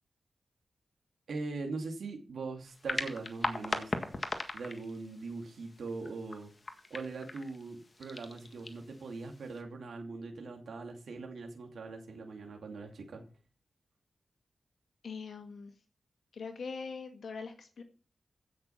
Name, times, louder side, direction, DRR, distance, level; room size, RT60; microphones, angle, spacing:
voice 1, 1.3-3.9 4.5-6.5 6.9-13.2, right 3 dB, 80° right, 3 dB, 2.4 m, -41 dB
sound 1, 2.7-9.6, left 2 dB, 35° left, 1.7 m, -40 dB
voice 2, 15.0-15.7 16.3-17.8, left 5 dB, 75° left, 6 dB, 1.8 m, -42 dB
15.5 x 6.6 x 5.9 m, 0.38 s
cardioid pair, 80°, 0 cm